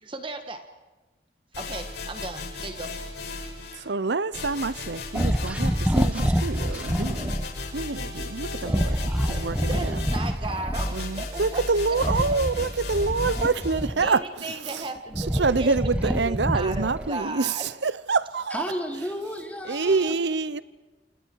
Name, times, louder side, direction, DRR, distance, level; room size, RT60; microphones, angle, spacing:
voice 1, 0.0-0.6 1.6-2.9 9.7-11.6 14.0-17.7, right 2 dB, 30° right, 1.7 m, -35 dB
sound 1, 1.5-3.8 4.3-13.8, left 2 dB, 70° left, 6.4 m, -36 dB
voice 2, 3.7-7.3 7.7-10.0 10.9-14.8 15.2-18.6 19.7-20.6, right 4 dB, 85° right, 0.8 m, -27 dB
sound 2, 5.1-7.5 8.6-11.0 11.9-14.3 14.8-17.2, equal, 5° right, 1.0 m, -27 dB
voice 3, 18.5-20.1, equal, 10° left, 3.5 m, -32 dB
29.5 x 29.0 x 4.7 m
head